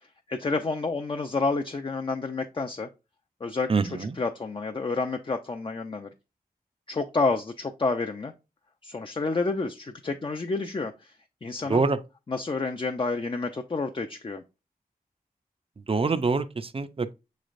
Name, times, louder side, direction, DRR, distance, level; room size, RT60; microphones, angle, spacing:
voice 1, 0.3-2.9 3.4-6.1 6.9-8.3 8.8-11.1 11.4-12.0 12.3-14.4, left 3 dB, 35° left, 0.4 m, -29 dB
voice 2, 3.7-4.1 11.7-12.0 15.9-17.1, right 4 dB, 35° right, 0.4 m, -25 dB
6.2 x 3.2 x 2.4 m
wide cardioid pair, 85°, 16 cm